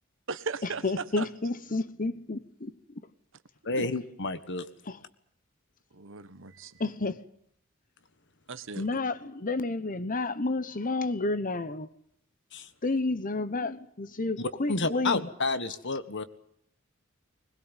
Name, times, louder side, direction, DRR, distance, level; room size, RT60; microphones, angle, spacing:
voice 1, 0.3-1.3 3.7-3.9 5.9-6.8 8.5-8.8, right 4 dB, 65° right, 1.4 m, -37 dB
voice 2, 0.8-2.7 4.9-5.0 6.8-7.2 8.8-11.9 12.8-15.3, left 2 dB, 40° left, 1.1 m, -30 dB
voice 3, 3.6-4.6 12.5-12.7 14.4-16.2, left 3 dB, 60° left, 1.6 m, -30 dB
21.0 x 20.5 x 9.1 m
head